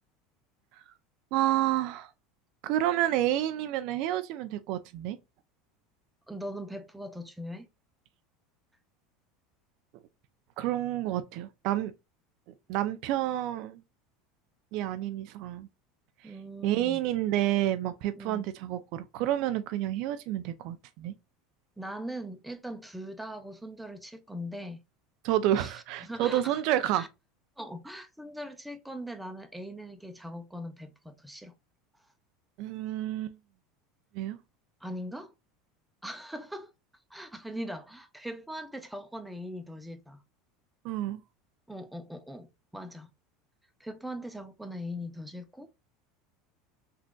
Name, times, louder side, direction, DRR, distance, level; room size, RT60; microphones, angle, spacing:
voice 1, 1.3-2.1 2.6-5.2 10.6-11.9 12.7-13.8 14.7-15.7 16.2-16.3 16.6-21.1 25.2-27.1 32.6-33.3 34.1-34.4 40.8-41.2, right 13 dB, 65° right, 0.3 m, -29 dB
voice 2, 6.3-7.7 16.2-17.0 18.2-18.5 21.8-24.8 25.6-26.6 26.9-27.1 27.6-31.5 34.8-35.3 36.0-36.7 37.1-40.2 41.7-43.1 43.8-45.7, equal, 5° right, 0.5 m, -40 dB
3.7 x 2.4 x 2.2 m
supercardioid pair, 105°, 0 cm